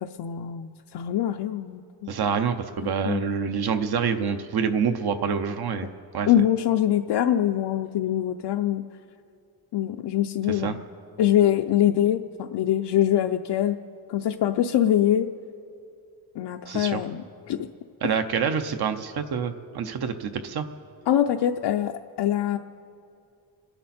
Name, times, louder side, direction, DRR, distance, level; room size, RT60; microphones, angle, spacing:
voice 1, 0.0-2.1 3.0-3.2 6.3-8.8 9.7-10.8 11.2-13.8 14.1-15.3 16.4-17.7 21.1-22.6, left 11 dB, 80° left, 6 dB, 0.6 m, -24 dB
voice 2, 2.1-5.9 6.1-6.3 10.5-10.7 16.7-17.0 18.0-20.7, right 6 dB, 65° right, 8 dB, 0.8 m, -27 dB
29.0 x 10.0 x 4.3 m, 2.5 s
wide cardioid pair, 170°, 41 cm